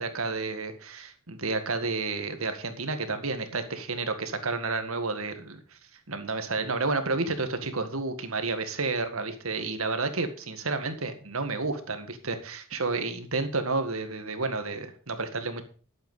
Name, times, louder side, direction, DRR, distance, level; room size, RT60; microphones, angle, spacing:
voice 1, 0.0-5.6 6.1-15.6, right 3 dB, 70° right, 8 dB, 1.9 m, -31 dB
11.5 x 8.4 x 5.6 m, 0.40 s
head